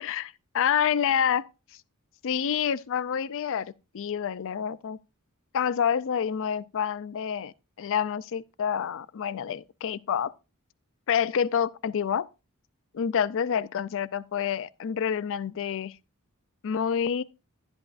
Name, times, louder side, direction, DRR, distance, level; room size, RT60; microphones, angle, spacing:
voice 1, 0.0-1.4 2.2-3.7 3.9-5.0 5.5-10.3 11.1-12.3 12.9-15.9 16.6-17.2, left 8 dB, 60° left, 0.4 m, -28 dB
11.5 x 10.5 x 2.5 m
head